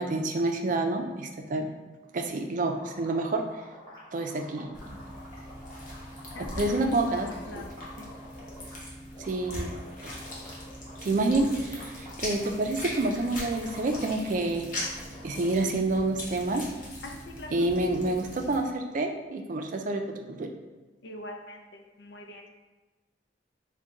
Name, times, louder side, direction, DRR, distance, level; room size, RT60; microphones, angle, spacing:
voice 1, 0.0-1.7 2.1-3.4 4.1-4.7 6.6-7.6 9.2-9.7 10.0-10.1 11.0-14.7 15.2-16.6 17.5-20.0 20.3-20.5, right 2 dB, 50° right, 4 dB, 0.4 m, -28 dB
sound 1, 2.8-8.8 9.1-15.7, left 1 dB, 25° left, 1.2 m, -48 dB
sound 2, 4.7-18.6, left 1 dB, 50° left, 0.9 m, -40 dB
voice 2, 6.3-6.9 7.4-8.1 17.0-17.7 18.1-18.2 21.0-22.5, left 1 dB, 85° left, 2 dB, 0.5 m, -43 dB
3.6 x 2.2 x 3.9 m, 1.2 s
head